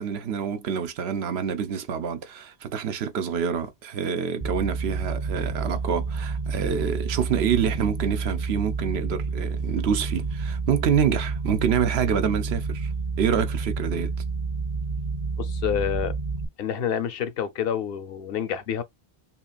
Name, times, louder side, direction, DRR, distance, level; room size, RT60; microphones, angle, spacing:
voice 1, 0.0-12.9 13.2-14.1, right 7 dB, 85° right, 0.9 m, -27 dB
sound 1, 4.4-16.5, right 4 dB, 50° right, 0.9 m, -29 dB
voice 2, 15.4-16.1 16.6-18.8, left 9 dB, 70° left, 0.9 m, -28 dB
5.5 x 2.5 x 2.3 m
omnidirectional pair, 1.0 m